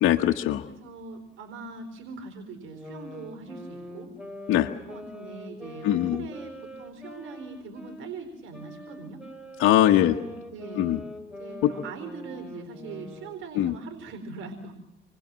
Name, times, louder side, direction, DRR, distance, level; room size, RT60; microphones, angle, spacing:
voice 1, 0.0-0.7 4.5-4.7 5.8-6.3 9.6-10.2 10.8-11.0 11.6-11.7 13.5-13.7, left 12 dB, 90° left, 3 dB, 1.3 m, -21 dB
voice 2, 0.7-4.1 4.9-9.2 10.1-11.0 11.4-14.7, right 4 dB, 85° right, 7 dB, 4.2 m, -41 dB
sound 1, 2.6-8.0 8.5-13.4, left 1 dB, 5° right, 6.6 m, -43 dB
28.5 x 21.5 x 7.5 m, 0.90 s
cardioid pair, 90°, 20 cm